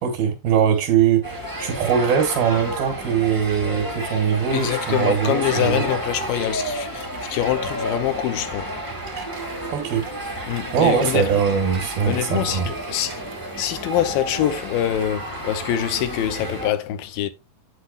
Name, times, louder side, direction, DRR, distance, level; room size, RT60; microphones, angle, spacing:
voice 1, 0.0-5.9 9.7-10.1 10.7-12.7, right 8 dB, 85° right, 3.3 m, -21 dB
sound 1, 1.2-16.7, right 1 dB, 10° right, 1.0 m, -31 dB
voice 2, 4.5-8.7 10.5-11.3 12.0-13.2 13.6-17.3, left 11 dB, 80° left, 2.4 m, -25 dB
sound 2, 6.8-13.8, right 3 dB, 40° right, 3.6 m, -45 dB
8.4 x 7.8 x 2.4 m
omnidirectional pair, 4.1 m